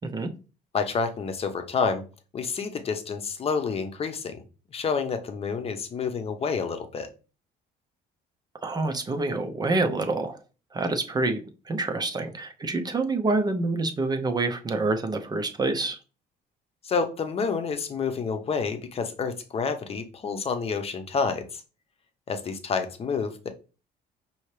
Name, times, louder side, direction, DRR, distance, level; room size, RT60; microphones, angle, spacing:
voice 1, 0.7-2.0 2.3-4.4 4.7-7.1 16.8-21.6 22.3-23.5, left 5 dB, 35° left, 7 dB, 0.8 m, -29 dB
voice 2, 8.6-10.4 10.7-11.4 11.7-16.0, right 3 dB, 25° right, 5 dB, 0.6 m, -27 dB
5.5 x 2.8 x 3.2 m, 0.34 s
cardioid pair, 110°, 17 cm